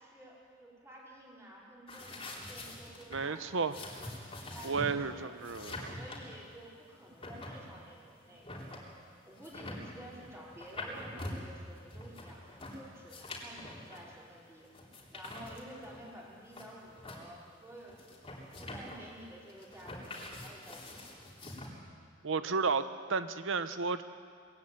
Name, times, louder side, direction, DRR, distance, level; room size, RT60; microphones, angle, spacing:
voice 1, 0.0-3.9 4.5-5.3 5.9-8.8 9.2-14.7 15.1-18.2 18.6-21.0 22.4-22.6, right 1 dB, 15° right, -5 dB, 5.2 m, -51 dB
sound 1, 1.9-21.7, left 1 dB, 25° left, 3.7 m, -45 dB
voice 2, 3.1-3.7 4.6-5.9 22.2-22.8 23.1-24.0, right 4 dB, 70° right, 11 dB, 0.9 m, -32 dB
21.0 x 15.0 x 9.3 m, 2.2 s
head